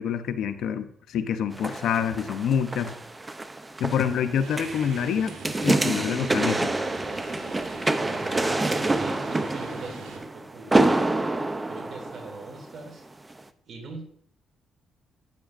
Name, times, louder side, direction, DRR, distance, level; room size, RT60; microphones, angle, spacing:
voice 1, 0.0-2.9 3.8-5.3 5.6-6.7, left 8 dB, 75° left, 9 dB, 0.7 m, -26 dB
sound 1, 1.5-12.8 13.3-13.4, right 2 dB, 20° right, 0.5 m, -27 dB
sound 2, 4.4-10.2, right 4 dB, 90° right, 1.8 m, -41 dB
voice 2, 8.0-13.0 13.7-14.0, right 3 dB, 60° right, 5 dB, 2.2 m, -41 dB
12.0 x 9.0 x 2.5 m, 0.64 s
cardioid pair, 90°, 0 cm